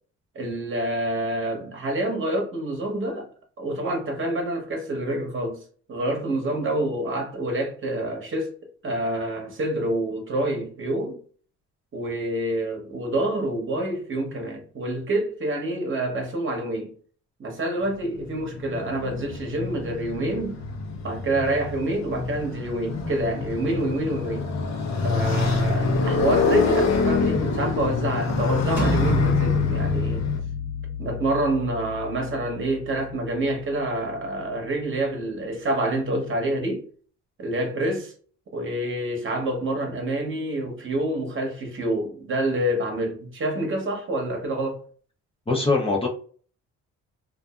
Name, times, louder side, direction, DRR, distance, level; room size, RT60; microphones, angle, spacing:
voice 1, 0.3-3.3 3.6-5.6 5.9-8.5 8.8-11.2 11.9-16.9 17.4-20.6 21.0-24.5 25.0-30.3 31.0-36.8 37.4-38.1 38.5-44.8, right 1 dB, 40° right, 1.0 m, -27 dB
Motorcycle, 17.9-30.4, left 4 dB, 60° left, 0.8 m, -26 dB
sound 1, 28.8-34.4, left 2 dB, 5° right, 1.0 m, -30 dB
voice 2, 45.5-46.1, left 3 dB, 20° left, 0.6 m, -22 dB
2.5 x 2.4 x 2.3 m
cardioid pair, 90°, 30 cm